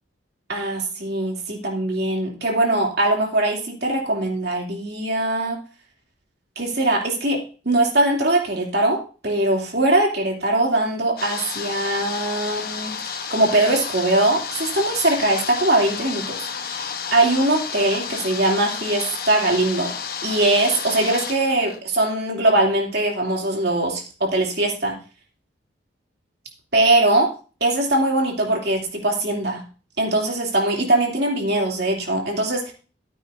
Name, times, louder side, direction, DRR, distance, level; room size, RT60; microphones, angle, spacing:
voice 1, 0.5-5.6 6.6-19.9 20.2-24.9 26.7-27.3 27.6-29.6 30.0-32.7, right 2 dB, 55° right, -1 dB, 2.8 m, -21 dB
sound 1, 11.2-21.8, left 6 dB, 50° left, 1.0 m, -31 dB
14.0 x 9.3 x 2.7 m, 0.35 s
head